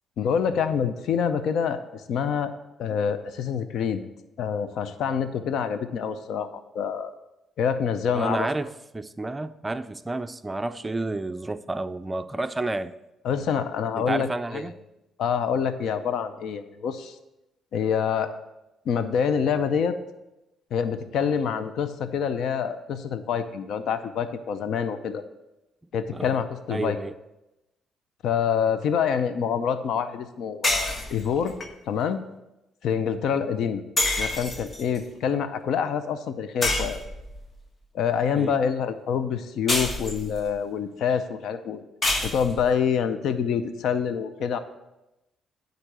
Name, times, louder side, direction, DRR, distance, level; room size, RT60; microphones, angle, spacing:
voice 1, 0.2-2.5 2.8-4.0 4.4-7.1 7.6-8.5 13.2-14.3 14.5-14.6 15.2-17.1 17.7-18.3 18.9-20.0 20.7-25.2 25.9-27.0 28.2-31.5 31.9-32.2 32.8-33.8 34.2-37.0 37.9-41.8 42.2-44.6, left 7 dB, 75° left, 0.6 m, -26 dB
voice 2, 8.1-12.9 14.0-14.8 26.1-26.4 26.7-27.1 38.3-38.6, right 2 dB, 20° right, 0.4 m, -30 dB
sound 1, 30.6-31.7 34.0-35.0 36.6-37.5 39.7-40.5 42.0-42.8, left 2 dB, 40° left, 1.3 m, -27 dB
10.0 x 4.0 x 6.6 m
cardioid pair, 90°, 0 cm